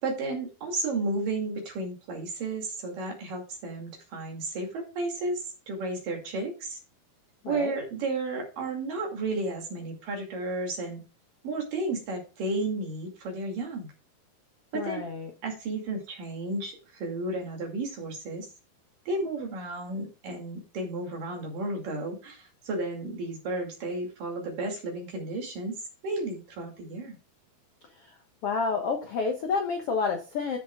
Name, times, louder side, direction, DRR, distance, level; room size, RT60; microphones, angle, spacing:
voice 1, 0.0-6.8 7.5-11.0 11.4-13.9 14.7-15.1 15.4-18.5 19.1-25.7 26.0-27.2, right 2 dB, 60° right, 1 dB, 3.8 m, -33 dB
voice 2, 7.4-7.7 14.7-15.3 28.4-30.6, left 5 dB, 75° left, 4 dB, 1.3 m, -29 dB
13.5 x 7.3 x 2.3 m, 0.33 s
omnidirectional pair, 4.5 m